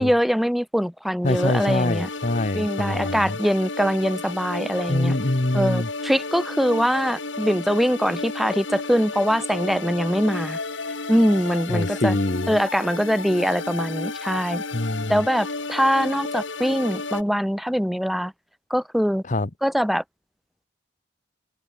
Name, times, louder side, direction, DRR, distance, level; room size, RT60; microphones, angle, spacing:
voice 1, 0.0-2.1 2.5-5.2 5.5-10.6 11.1-12.2 12.5-14.6 15.1-18.3 18.7-19.2 19.6-20.0, equal, ahead, 3.4 m, -23 dB
voice 2, 1.2-3.4 4.9-5.9 11.7-12.5 14.7-15.2 19.3-19.5, left 2 dB, 45° left, 1.1 m, -24 dB
sound 1, 1.3-17.2, left 3 dB, 85° left, 3.7 m, -32 dB
head